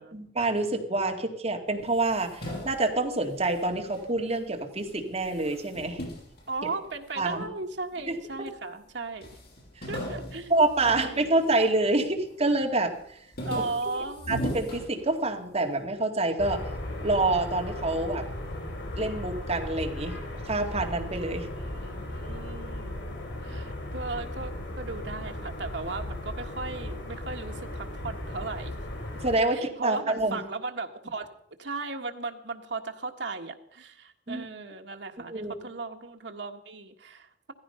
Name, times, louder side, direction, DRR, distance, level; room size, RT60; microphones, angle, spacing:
voice 1, 0.0-6.0 7.2-7.5 8.1-8.5 9.8-9.9 10.5-13.2 14.3-16.6 17.0-18.3 19.0-20.2 20.4-21.5 29.2-30.4 34.3-34.5 35.3-35.5, right 2 dB, 35° right, 4 dB, 2.3 m, -27 dB
sound 1, 1.8-4.5 4.8-7.3 7.9-8.6 8.8-8.9 9.2-11.8 12.2-12.6 13.0-15.6, equal, 60° left, 6.2 m, -39 dB
voice 2, 6.5-9.3 9.9-10.5 10.9-11.3 13.4-14.3 21.6-23.1 23.4-28.7 29.5-31.3 31.6-37.5, right 3 dB, 75° right, 4 dB, 1.6 m, -36 dB
sound 2, 16.4-29.4, left 1 dB, 90° left, 5.1 m, -36 dB
16.5 x 14.5 x 5.6 m, 0.67 s
head